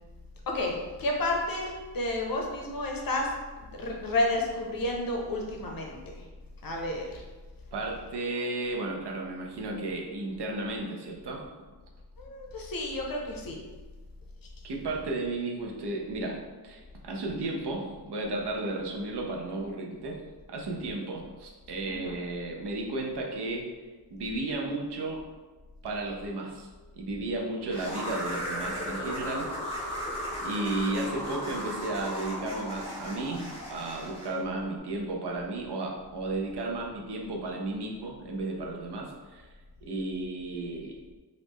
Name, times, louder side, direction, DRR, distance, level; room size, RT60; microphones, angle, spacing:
voice 1, 0.5-3.3 3.8-6.1 6.6-7.2 12.2-13.6 21.9-22.1, left 1 dB, 55° left, 0 dB, 0.6 m, -31 dB
voice 2, 7.7-11.4 14.6-16.4 16.6-23.6 24.1-25.2 25.8-26.7 26.9-30.0 30.4-39.5 39.8-41.0, right 2 dB, 75° right, -1 dB, 0.7 m, -34 dB
sound 1, 27.7-34.4, equal, 15° left, 1.0 m, -36 dB
3.0 x 2.5 x 3.5 m, 1.3 s
wide cardioid pair, 175°, 41 cm